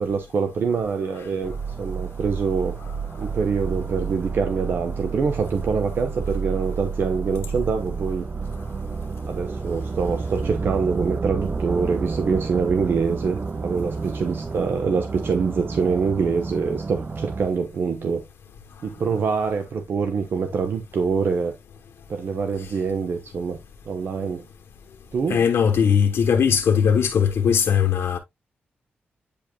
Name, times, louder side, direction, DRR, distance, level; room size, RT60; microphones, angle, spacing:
voice 1, 0.0-1.5 1.8-2.7 3.2-8.3 9.3-18.2 18.8-21.6 22.1-23.6 23.9-24.4 25.1-25.4, right 5 dB, 65° right, 1.0 m, -25 dB
sound 1, 1.4-17.5, right 4 dB, 30° right, 0.4 m, -30 dB
voice 2, 25.3-28.2, left 7 dB, 75° left, 1.0 m, -19 dB
8.9 x 5.2 x 2.2 m
wide cardioid pair, 105°, 4 cm